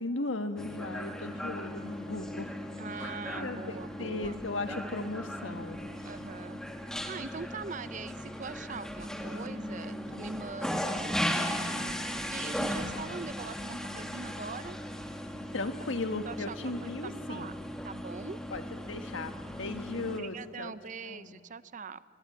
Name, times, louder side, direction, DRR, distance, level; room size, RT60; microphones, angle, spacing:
voice 1, 0.0-2.6 2.9-5.8 15.5-17.5 18.5-20.7 21.0-21.4, left 2 dB, 80° left, 7 dB, 1.6 m, -37 dB
sound 1, 0.6-20.2, equal, 5° left, 1.4 m, -37 dB
voice 2, 2.8-4.4 6.0-6.6 7.1-14.8 15.8-15.9 16.3-17.5 17.8-18.4 20.2-22.0, right 4 dB, 40° right, 15 dB, 0.6 m, -42 dB
24.0 x 22.5 x 8.7 m, 2.2 s
head